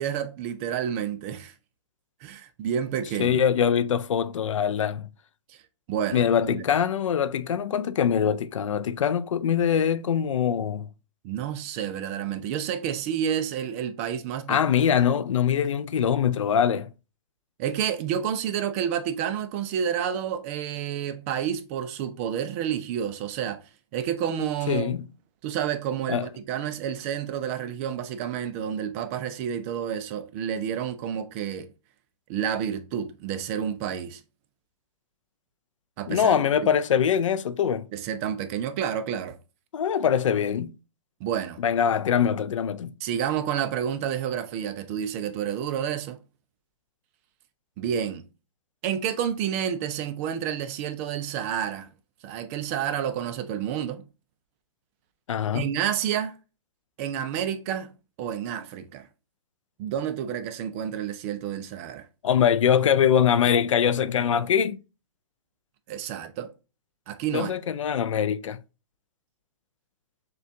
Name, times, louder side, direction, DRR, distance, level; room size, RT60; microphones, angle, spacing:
voice 1, 0.0-1.5 2.2-3.4 5.5-5.6 5.9-6.6 11.2-14.6 17.6-23.6 23.9-25.0 25.4-31.7 32.3-34.2 36.0-36.7 37.9-39.4 41.2-41.6 43.0-46.2 47.8-48.2 48.8-51.9 52.2-54.0 55.5-56.4 57.0-57.9 58.2-59.1 59.8-62.1 65.9-66.5 67.1-67.5, right 9 dB, 30° right, 0.4 m, -29 dB
voice 2, 3.2-5.1 6.1-10.9 14.5-16.9 24.7-25.0 26.1-26.3 36.1-37.9 39.7-40.8 41.6-42.9 55.3-55.7 62.2-64.8 67.3-68.6, left 8 dB, 85° left, 0.4 m, -23 dB
6.5 x 2.3 x 2.6 m
hypercardioid pair, 145°, 16 cm